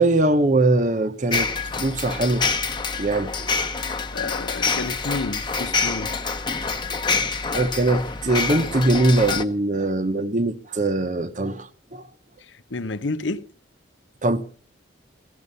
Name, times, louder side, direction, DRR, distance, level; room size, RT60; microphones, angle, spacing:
voice 1, 0.0-2.5 3.0-3.5 6.9-7.0 7.5-12.0 14.2-14.4, right 2 dB, 40° right, 0.9 m, -22 dB
sound 1, 1.3-9.4, left 4 dB, 25° left, 1.0 m, -26 dB
voice 2, 4.1-6.1 12.7-13.5, left 3 dB, 75° left, 1.0 m, -30 dB
18.0 x 14.0 x 5.4 m
head